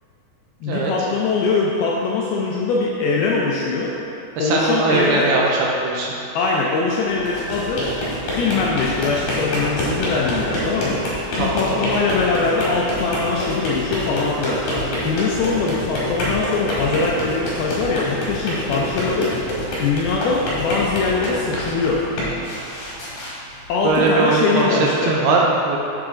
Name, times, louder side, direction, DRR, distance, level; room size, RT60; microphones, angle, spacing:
voice 1, 0.6-4.0 4.4-5.3 6.4-7.9 8.3-11.0 11.4-19.4 19.8-22.1 23.7-25.2, left 4 dB, 80° left, -3 dB, 2.2 m, -22 dB
voice 2, 4.4-6.1 11.3-11.9 23.8-25.8, right 3 dB, 80° right, -2 dB, 2.4 m, -20 dB
sound 1, 7.1-24.1, left 1 dB, 55° left, 2.6 m, -26 dB
7.3 x 7.2 x 3.9 m, 2.8 s
omnidirectional pair, 5.0 m